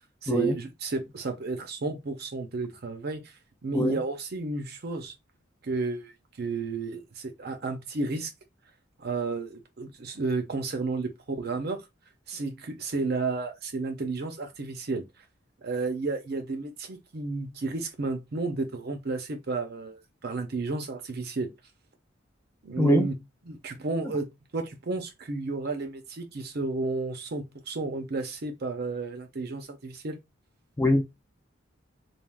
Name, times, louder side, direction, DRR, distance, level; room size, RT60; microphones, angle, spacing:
voice 1, 0.2-3.3 3.6-5.1 5.6-8.3 9.0-11.8 12.3-15.0 15.6-21.5 22.6-23.2 23.5-30.2, right 3 dB, 50° right, 0.6 m, -32 dB
voice 2, 22.8-23.1 30.8-31.0, left 1 dB, 15° left, 0.4 m, -22 dB
3.3 x 2.3 x 2.3 m
head